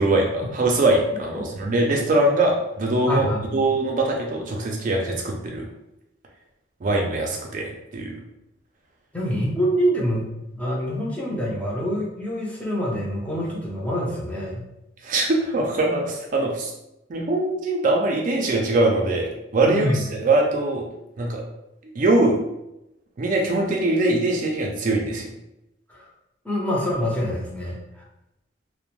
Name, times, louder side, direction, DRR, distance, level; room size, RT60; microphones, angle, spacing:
voice 1, 0.0-3.3 3.5-5.6 6.8-8.1 15.0-16.7 17.1-19.9 20.2-20.8 21.2-21.4 22.0-22.3 23.2-25.3, right 2 dB, 45° right, 0 dB, 0.4 m, -22 dB
voice 2, 3.1-3.6 9.1-14.6 19.6-20.0 25.9-26.1 26.4-28.0, equal, 5° left, -4 dB, 0.5 m, -26 dB
2.5 x 2.0 x 2.9 m, 0.89 s
head